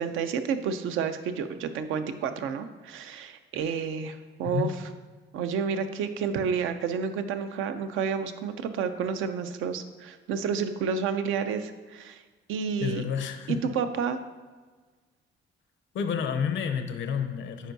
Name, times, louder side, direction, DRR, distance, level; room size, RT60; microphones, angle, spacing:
voice 1, 0.0-4.7 5.3-12.2 12.5-13.0 13.5-14.2, right 6 dB, 85° right, 9 dB, 0.5 m, -30 dB
voice 2, 12.8-13.6 15.9-17.7, left 7 dB, 70° left, 8 dB, 0.6 m, -30 dB
8.9 x 4.5 x 2.7 m, 1.4 s
cardioid pair, 90°, 20 cm